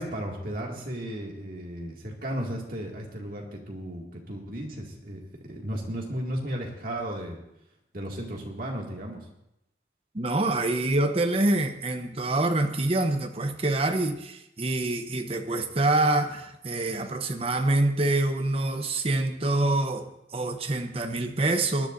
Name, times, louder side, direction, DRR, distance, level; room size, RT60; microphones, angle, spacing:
voice 1, 0.0-7.4 7.9-9.3, right 1 dB, 50° right, -1 dB, 2.1 m, -35 dB
voice 2, 10.1-21.9, right 2 dB, 30° right, 7 dB, 0.8 m, -26 dB
20.5 x 11.0 x 2.6 m, 0.84 s
head